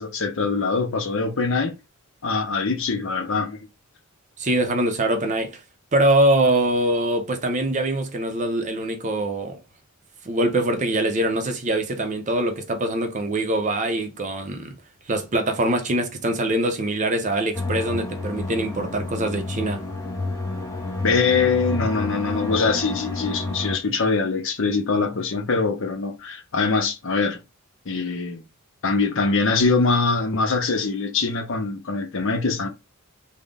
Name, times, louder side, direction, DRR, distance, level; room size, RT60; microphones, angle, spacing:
voice 1, 0.0-1.8 2.2-3.6 21.0-27.4 27.9-28.4 28.8-32.7, left 4 dB, 60° left, 0.8 m, -23 dB
voice 2, 4.4-5.6 5.9-9.6 10.2-14.8 15.1-19.9, right 1 dB, 35° right, 0.6 m, -23 dB
sound 1, 17.5-23.8, left 2 dB, 15° left, 0.8 m, -30 dB
3.7 x 2.1 x 3.6 m
head